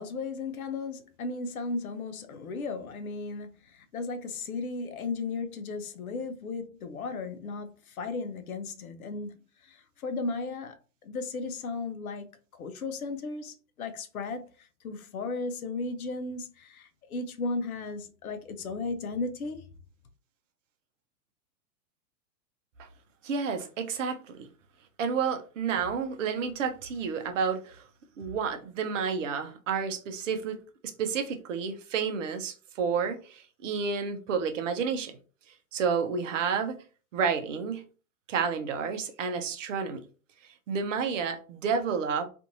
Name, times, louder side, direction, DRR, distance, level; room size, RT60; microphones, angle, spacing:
voice 1, 0.0-9.3 9.6-10.8 11.0-12.3 12.5-19.6, left 3 dB, 70° left, 0.7 m, -35 dB
voice 2, 23.2-24.5 25.0-27.8 28.2-30.6 30.8-35.1 35.7-36.8 37.1-37.8 38.3-40.0 40.7-42.3, right 6 dB, 55° right, 0.7 m, -30 dB
2.5 x 2.5 x 2.7 m
figure-of-eight pair, 105°, 46 cm